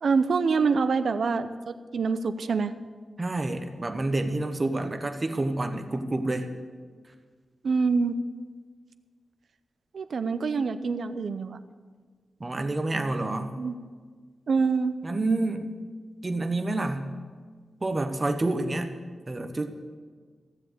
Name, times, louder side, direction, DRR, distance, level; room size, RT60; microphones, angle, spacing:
voice 1, 0.0-2.7 7.6-8.1 9.9-11.6 13.6-13.7 14.5-14.9, right 4 dB, 65° right, 10 dB, 0.6 m, -25 dB
voice 2, 3.2-6.5 12.4-13.5 15.0-15.7 16.2-17.1 17.8-18.9 19.3-19.7, right 2 dB, 30° right, 6 dB, 1.1 m, -28 dB
14.5 x 7.6 x 8.1 m, 1.5 s
wide cardioid pair, 130°, 0 cm